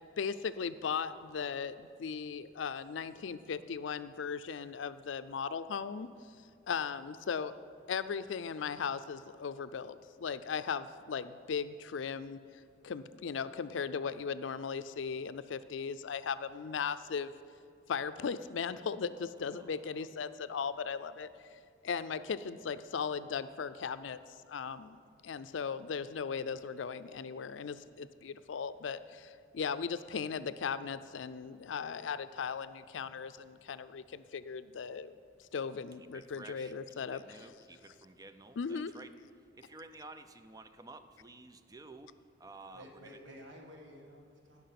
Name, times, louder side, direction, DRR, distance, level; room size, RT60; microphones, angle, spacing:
voice 1, 0.2-6.1 6.7-7.5 7.9-12.4 12.8-17.3 17.9-21.3 21.8-24.2 24.5-25.0 25.2-35.1 35.4-37.4 38.6-38.9, left 6 dB, 85° left, 14 dB, 0.4 m, -37 dB
voice 2, 19.5-20.1 36.0-39.1 39.5-42.1 42.4-43.2, right 2 dB, 20° right, 10 dB, 0.5 m, -52 dB
voice 3, 42.7-44.7, equal, 70° right, 1 dB, 1.8 m, -52 dB
17.0 x 5.9 x 5.9 m, 2.3 s
head